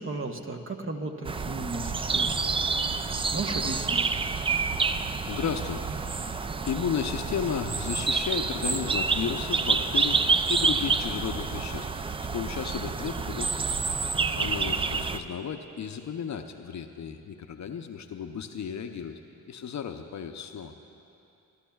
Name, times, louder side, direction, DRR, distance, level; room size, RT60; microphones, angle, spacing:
voice 1, 0.0-2.4 2.9-3.0 3.3-4.1, right 3 dB, 30° right, 4 dB, 1.0 m, -35 dB
sound 1, 1.3-15.2, right 4 dB, 15° right, 0.3 m, -28 dB
voice 2, 5.2-5.9 6.2-11.9 12.2-13.7 14.4-19.2 19.5-20.7, left 7 dB, 45° left, 7 dB, 0.7 m, -34 dB
19.5 x 11.5 x 2.3 m, 2.7 s
supercardioid pair, 55°, 39 cm